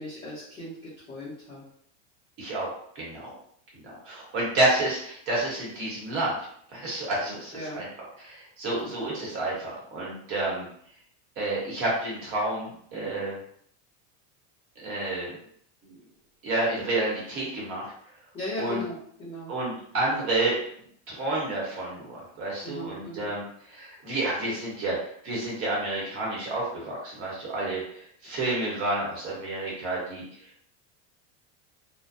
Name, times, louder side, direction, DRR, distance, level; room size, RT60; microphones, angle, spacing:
voice 1, 0.0-1.6 7.5-7.9 8.8-8.9 18.3-19.5 22.6-23.3, left 1 dB, 15° left, -12 dB, 0.5 m, -37 dB
voice 2, 2.4-2.7 2.9-3.3 3.8-6.3 6.7-7.9 8.2-10.7 11.4-13.4 14.8-15.4 15.8-16.0 16.4-17.9 18.6-18.8 19.5-20.6 21.1-25.0 25.2-30.2, right 2 dB, 35° right, -4 dB, 1.0 m, -29 dB
2.4 x 2.1 x 2.6 m, 0.65 s
supercardioid pair, 170°, 36 cm